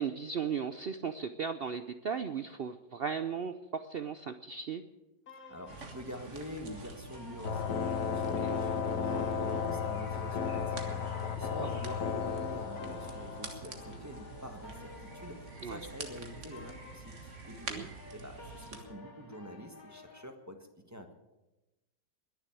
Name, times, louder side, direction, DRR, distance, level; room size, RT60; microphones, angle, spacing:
voice 1, 0.0-4.8 8.4-8.5 11.6-11.7 15.6-15.8 17.7-17.9, right 6 dB, 80° right, 10 dB, 0.5 m, -36 dB
sound 1, 5.3-20.3, left 3 dB, 55° left, 2.3 m, -53 dB
voice 2, 5.3-20.6 20.9-21.1, equal, 10° right, 4 dB, 1.3 m, -46 dB
sound 2, 5.7-18.8, right 4 dB, 45° right, 1.9 m, -47 dB
sound 3, 7.4-14.6, left 6 dB, 75° left, 1.7 m, -34 dB
21.5 x 7.2 x 8.9 m, 1.0 s
omnidirectional pair, 1.8 m